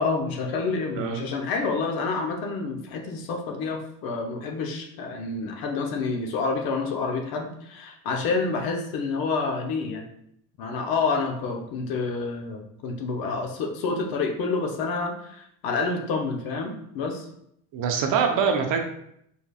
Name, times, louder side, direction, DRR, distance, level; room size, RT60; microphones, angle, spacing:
voice 1, 0.0-10.1 10.6-17.3, left 4 dB, 55° left, 3 dB, 0.9 m, -28 dB
voice 2, 17.7-18.8, right 6 dB, 50° right, 4 dB, 0.8 m, -24 dB
5.1 x 4.3 x 2.4 m, 0.72 s
cardioid pair, 145°, 42 cm